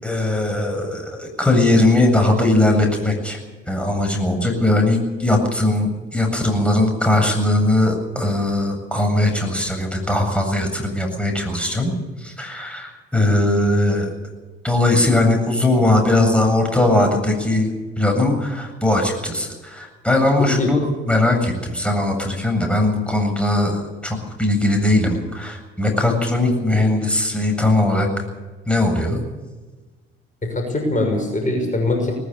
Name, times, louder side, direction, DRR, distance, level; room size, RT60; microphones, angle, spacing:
voice 1, 0.0-3.4 3.7-11.9 12.2-14.1 14.6-20.8 21.1-28.1 28.7-29.2, left 2 dB, 5° left, 3 dB, 7.7 m, -19 dB
voice 2, 4.6-4.9 20.4-20.7 30.4-32.1, left 2 dB, 25° left, 3 dB, 6.2 m, -22 dB
20.0 x 19.5 x 6.9 m, 1.3 s
hypercardioid pair, 55°, 30 cm